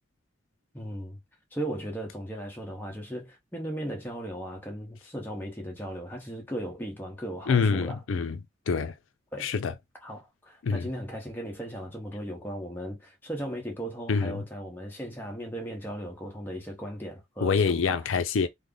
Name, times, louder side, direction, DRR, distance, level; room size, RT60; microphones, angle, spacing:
voice 1, 0.7-1.2 1.5-8.0 9.3-9.5 10.0-18.1, right 1 dB, 10° left, 1.0 m, -37 dB
voice 2, 7.5-8.4 8.7-8.9 9.4-9.7 10.6-10.9 14.1-14.4 17.4-18.5, left 5 dB, 80° left, 0.5 m, -26 dB
3.2 x 2.1 x 3.7 m
head